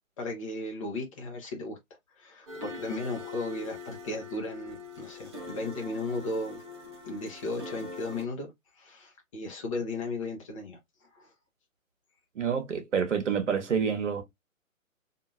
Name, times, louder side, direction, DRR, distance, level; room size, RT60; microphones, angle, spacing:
voice 1, 0.2-1.8 2.1-6.6 7.1-8.5 8.8-10.8 11.1-11.3, left 2 dB, 25° left, 0.7 m, -35 dB
sound 1, 2.5-8.2, left 3 dB, 20° right, 0.6 m, -43 dB
voice 2, 12.3-14.2, right 7 dB, 60° right, 1.1 m, -28 dB
2.9 x 2.6 x 2.4 m
figure-of-eight pair, 130°, 41 cm